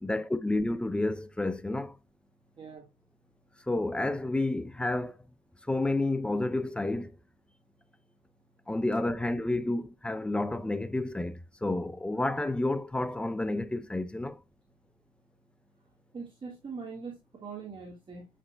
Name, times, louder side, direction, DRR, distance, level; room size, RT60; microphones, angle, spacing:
voice 1, 0.0-2.0 3.7-5.2 5.7-7.1 8.7-14.4, left 2 dB, 5° left, 0.5 m, -30 dB
voice 2, 2.6-2.9 15.7-18.3, right 5 dB, 30° right, 1.7 m, -43 dB
7.6 x 6.1 x 2.2 m
cardioid pair, 110°, 17 cm